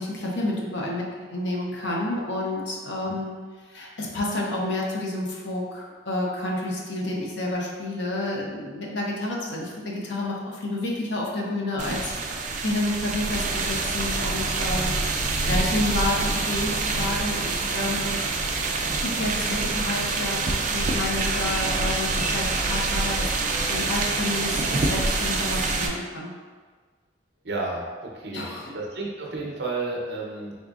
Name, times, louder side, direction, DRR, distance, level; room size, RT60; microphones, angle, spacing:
voice 1, 0.0-3.4 3.7-12.1 12.6-14.9 15.5-18.2 19.0-26.3 28.3-28.7, left 1 dB, 70° left, -2 dB, 0.7 m, -30 dB
sound 1, 11.8-25.9, right 3 dB, 40° right, 0.3 m, -26 dB
voice 2, 27.4-27.9 28.1-30.6, right 3 dB, 60° right, -2 dB, 0.7 m, -32 dB
3.8 x 3.6 x 2.4 m, 1.5 s
head